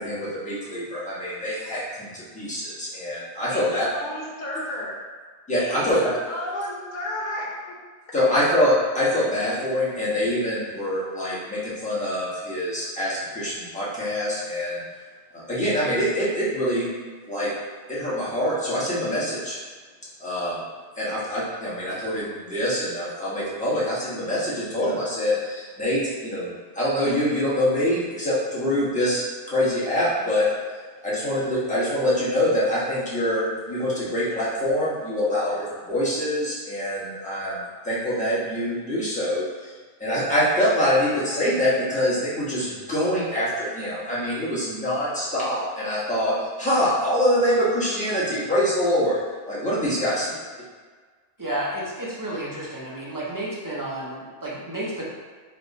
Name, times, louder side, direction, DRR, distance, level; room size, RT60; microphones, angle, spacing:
voice 1, 0.0-3.8 5.5-6.1 8.1-14.8 15.3-16.9 17.3-17.5 17.9-19.6 20.2-20.6 20.9-30.5 31.0-39.7 40.0-49.2 49.5-50.3, equal, 5° left, -10 dB, 1.2 m, -25 dB
voice 2, 3.5-5.0 5.6-7.8 8.1-8.2 49.9-50.2, left 1 dB, 50° left, -3 dB, 0.9 m, -33 dB
voice 3, 51.4-55.0, right 1 dB, 20° right, -6 dB, 0.8 m, -31 dB
3.5 x 3.0 x 4.1 m, 1.5 s
omnidirectional pair, 1.1 m